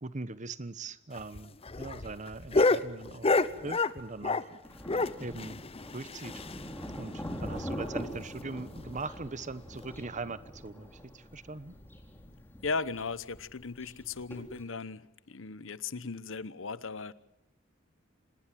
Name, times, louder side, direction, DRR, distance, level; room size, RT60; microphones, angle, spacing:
voice 1, 0.0-3.4 3.6-4.5 5.2-5.6 5.9-6.4 7.0-11.7, right 3 dB, 40° right, 16 dB, 1.0 m, -41 dB
sound 1, 1.1-4.6 4.9-6.9 7.2-7.3 7.5-7.6 8.0-8.1 8.7-9.0 9.8-10.0, left 3 dB, 30° left, 0.9 m, -29 dB
Thunder, 4.6-14.6, equal, 10° left, 4.0 m, -43 dB
voice 2, 12.6-17.1, left 4 dB, 90° left, 17 dB, 1.0 m, -37 dB
26.0 x 20.0 x 7.6 m, 0.80 s
head